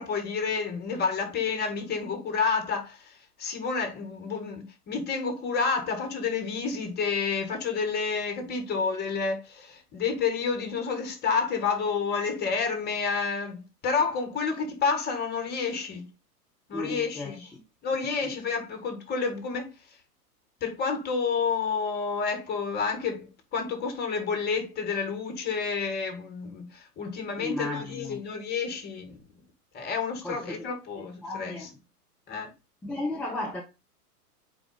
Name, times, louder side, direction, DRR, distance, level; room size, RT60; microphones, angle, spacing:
voice 1, 0.0-16.1 16.7-17.4 17.8-19.7 20.6-29.2 29.7-31.6 32.3-32.5, left 5 dB, 20° left, 2.2 m, -29 dB
voice 2, 16.7-17.6 27.4-28.2 30.2-30.7 31.0-31.7 32.8-33.6, left 2 dB, 5° left, 0.4 m, -34 dB
4.8 x 4.8 x 5.5 m
figure-of-eight pair, 105°, 46 cm